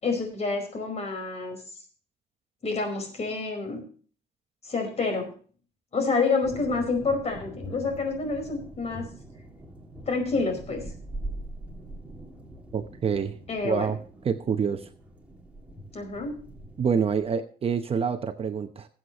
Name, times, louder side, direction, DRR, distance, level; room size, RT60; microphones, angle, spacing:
voice 1, 0.0-1.6 2.6-3.8 4.6-5.3 5.9-9.0 10.1-10.8 13.5-13.9 15.9-16.4, left 4 dB, 40° left, 4 dB, 4.9 m, -28 dB
sound 1, 6.4-17.3, right 1 dB, 10° right, 2.6 m, -42 dB
voice 2, 12.7-13.3 13.6-14.0 14.2-14.9 16.8-18.9, right 6 dB, 35° right, 8 dB, 0.9 m, -26 dB
20.0 x 8.1 x 3.1 m, 0.42 s
cardioid pair, 135°, 17 cm